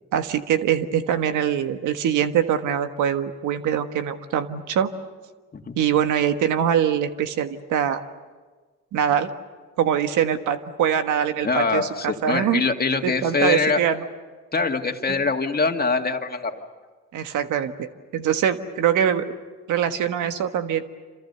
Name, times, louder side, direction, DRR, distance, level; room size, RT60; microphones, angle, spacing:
voice 1, 0.1-4.9 5.7-8.0 8.9-9.3 9.8-12.6 13.0-14.0 15.1-15.2 17.1-19.3 19.7-20.8, right 9 dB, 85° right, 8 dB, 1.5 m, -23 dB
voice 2, 11.4-13.8 14.5-16.6, left 4 dB, 30° left, 4 dB, 2.2 m, -23 dB
27.5 x 27.0 x 6.9 m, 1.4 s
cardioid pair, 90°, 30 cm